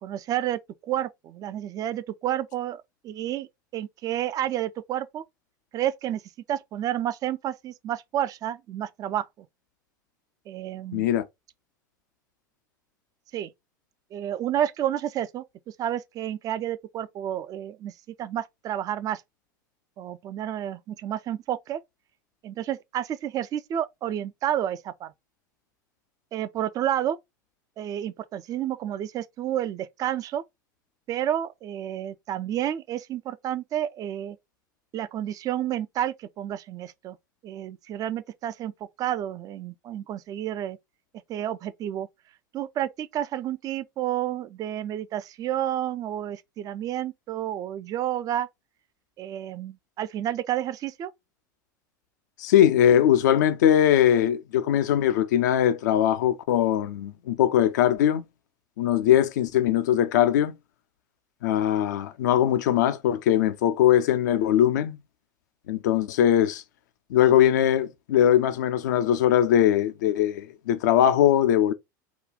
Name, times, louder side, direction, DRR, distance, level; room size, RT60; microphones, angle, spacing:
voice 1, 0.0-3.5 3.7-5.2 5.7-6.2 6.5-9.5 10.5-11.1 13.3-13.5 14.1-15.4 15.8-19.2 20.0-21.8 22.4-25.1 26.3-27.2 27.8-30.4 31.1-34.4 34.9-37.2 37.4-38.7 39.0-40.8 41.3-42.1 42.5-48.5 49.2-51.1, right 11 dB, 35° right, 0.5 m, -30 dB
voice 2, 10.9-11.2 52.4-58.2 58.8-60.5 61.4-65.0 65.7-66.6 67.1-71.7, left 10 dB, 60° left, 0.5 m, -21 dB
4.9 x 2.3 x 3.6 m
figure-of-eight pair, 80°, 11 cm